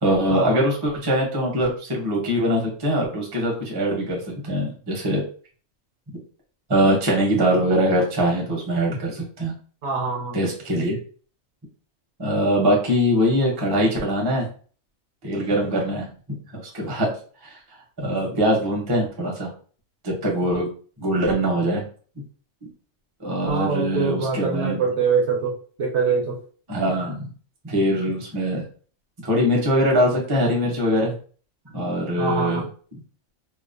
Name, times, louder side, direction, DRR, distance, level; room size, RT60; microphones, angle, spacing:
voice 1, 0.0-5.2 6.7-9.5 10.3-11.0 12.2-14.5 15.2-16.1 16.5-17.1 17.4-17.6 18.0-19.5 20.0-20.7 21.0-21.8 23.2-24.8 26.7-27.3 27.6-28.6 29.2-31.1 31.7-32.6 32.9-33.0, equal, 25° right, -1 dB, 0.6 m, -22 dB
voice 2, 9.8-10.4 23.5-26.4 32.2-32.6, right 5 dB, 60° right, -1 dB, 0.9 m, -24 dB
2.8 x 2.0 x 2.5 m, 0.42 s
omnidirectional pair, 1.4 m